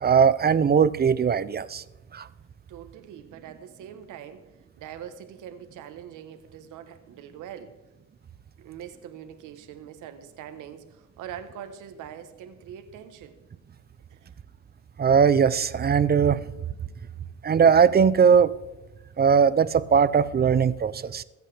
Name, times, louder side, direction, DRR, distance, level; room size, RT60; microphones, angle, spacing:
voice 1, 0.0-1.8 2.1-2.3 15.0-16.4 17.4-18.5 19.2-21.2, right 6 dB, 30° right, 0.6 m, -19 dB
voice 2, 2.7-4.4 4.8-7.8 8.6-13.4 14.1-14.3, right 9 dB, 90° right, 1.2 m, -43 dB
22.5 x 8.2 x 3.4 m
cardioid pair, 90°, 30 cm